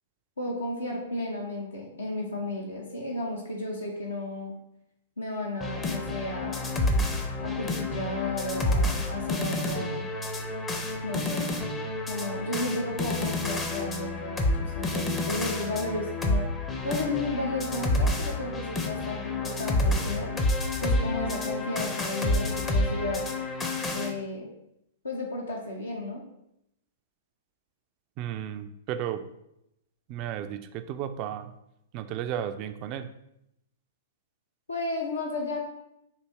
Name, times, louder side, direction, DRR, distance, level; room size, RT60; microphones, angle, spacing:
voice 1, 0.4-4.5 5.2-6.7 7.4-10.1 11.0-11.5 12.1-16.5 16.8-20.3 20.8-23.3 23.9-24.5 25.0-26.2 34.7-35.6, left 1 dB, 80° left, -1 dB, 0.7 m, -33 dB
sound 1, 5.6-24.1, left 2 dB, 15° left, 0.6 m, -29 dB
voice 2, 28.2-29.3 30.1-31.5 31.9-33.1, right 10 dB, 35° right, 10 dB, 0.3 m, -34 dB
4.0 x 2.8 x 4.6 m, 0.82 s
figure-of-eight pair, 105°, 0 cm